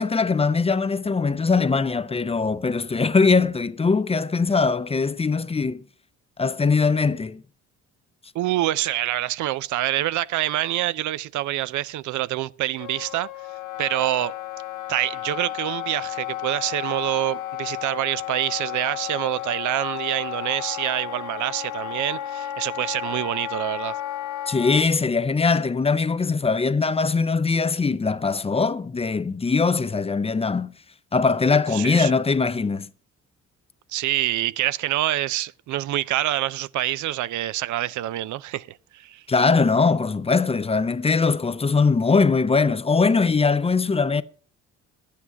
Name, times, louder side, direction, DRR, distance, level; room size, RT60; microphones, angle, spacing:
voice 1, 0.0-5.8 6.4-7.4 24.5-30.7 31.1-32.9 39.3-44.2, left 4 dB, 20° left, 0.5 m, -21 dB
voice 2, 8.3-13.3 13.8-14.3 14.9-24.0 31.7-32.1 33.9-39.2, right 15 dB, 75° right, 0.5 m, -26 dB
Wind instrument woodwind instrument, 12.8-24.9, left 12 dB, 80° left, 0.7 m, -33 dB
11.0 x 8.5 x 5.7 m
cardioid pair, 90°, 30 cm